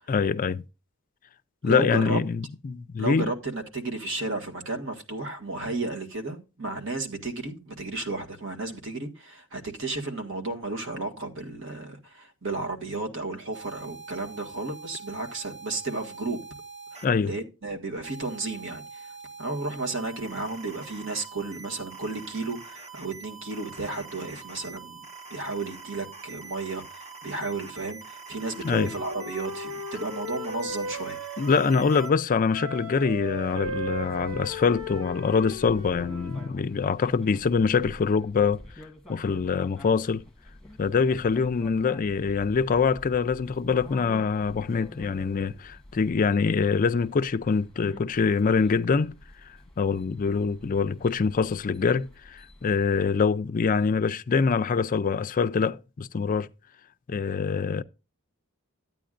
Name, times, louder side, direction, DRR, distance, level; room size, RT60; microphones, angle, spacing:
voice 1, 0.1-0.6 1.6-3.3 17.0-17.3 28.6-28.9 31.4-40.2 40.8-49.1 49.8-56.5 57.1-57.8, left 5 dB, 40° left, 0.4 m, -24 dB
voice 2, 1.6-2.2 3.0-16.4 16.9-19.1 19.4-31.2, right 3 dB, 60° right, 1.9 m, -33 dB
sound 1, 13.5-17.1 18.0-32.1, right 5 dB, 30° right, 1.2 m, -44 dB
Wind instrument woodwind instrument, 28.4-32.2 32.5-36.5, left 1 dB, 85° right, 2.0 m, -37 dB
sound 2, 33.5-53.0, left 1 dB, 5° left, 1.4 m, -48 dB
13.0 x 9.2 x 2.5 m
head